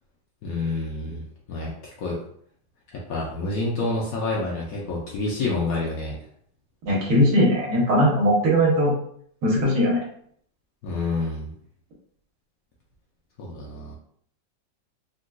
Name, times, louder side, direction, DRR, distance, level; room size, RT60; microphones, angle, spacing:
voice 1, 0.4-2.2 2.9-6.2 10.8-11.5 13.4-14.0, left 2 dB, 65° left, -3 dB, 0.9 m, -28 dB
voice 2, 6.8-8.9 9.4-10.0, equal, 70° right, -4 dB, 1.4 m, -19 dB
3.7 x 2.3 x 2.2 m, 0.63 s
omnidirectional pair, 1.9 m